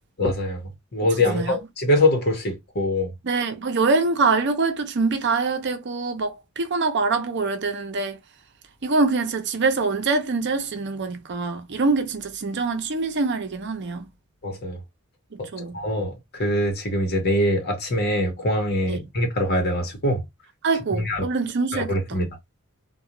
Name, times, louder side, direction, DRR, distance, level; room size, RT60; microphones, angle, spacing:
voice 1, 0.2-3.1 14.4-14.8 15.4-15.5 15.7-20.2 20.9-21.2 21.7-22.3, left 1 dB, 50° left, 1.0 m, -23 dB
voice 2, 1.2-1.6 3.2-8.2 8.8-14.1 15.3-15.8 18.9-19.0 20.6-22.2, right 3 dB, 55° right, 0.6 m, -24 dB
2.4 x 2.3 x 2.8 m
head